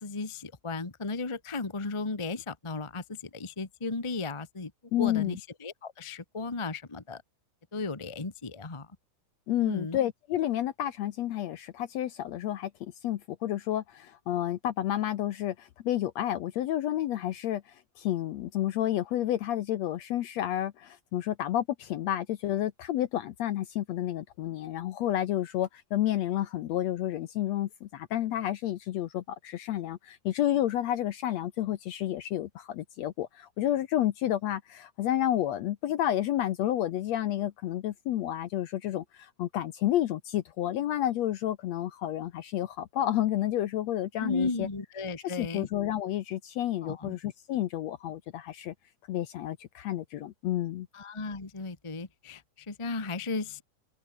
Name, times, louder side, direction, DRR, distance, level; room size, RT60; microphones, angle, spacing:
voice 1, 0.0-4.7 5.0-7.2 7.7-8.9 9.6-10.0 44.2-45.7 46.8-47.2 50.9-53.6, left 3 dB, 30° left, 0.5 m, -35 dB
voice 2, 4.9-5.4 9.5-17.6 18.0-44.7 45.2-48.7 49.1-50.9, left 12 dB, 70° left, 1.7 m, -30 dB
open air
omnidirectional pair, 3.9 m